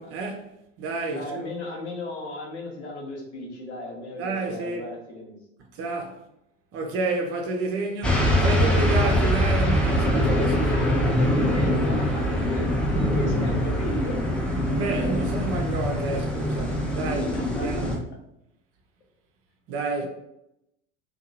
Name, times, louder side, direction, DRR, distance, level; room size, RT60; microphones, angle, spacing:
voice 1, 0.0-1.5 4.2-4.8 5.7-6.2 6.7-10.9 14.8-18.0 19.7-20.1, right 3 dB, 40° right, 0.6 m, -30 dB
voice 2, 1.1-5.4 10.6-14.2 17.3-17.9, left 2 dB, 65° left, 0.9 m, -35 dB
sound 1, 8.0-18.0, equal, 5° left, 0.4 m, -23 dB
2.7 x 2.5 x 2.6 m
figure-of-eight pair, 70°, 36 cm